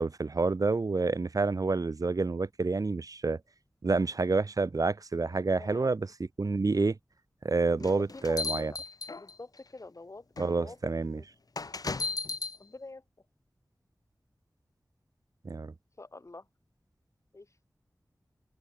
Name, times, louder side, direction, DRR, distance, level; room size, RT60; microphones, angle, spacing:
voice 1, 0.0-3.4 3.8-6.1 6.4-6.9 7.4-8.7 10.4-11.2 15.4-15.7, right 3 dB, 65° right, 1.4 m, -28 dB
voice 2, 5.6-5.9 7.8-8.8 9.2-10.3 10.5-11.2 12.6-13.0 16.0-16.5 17.3-17.7, left 2 dB, 50° left, 6.3 m, -47 dB
sound 1, 7.8-9.6 10.4-10.5 11.6-12.6, left 3 dB, 75° left, 3.3 m, -35 dB
wide cardioid pair, 70°, 6 cm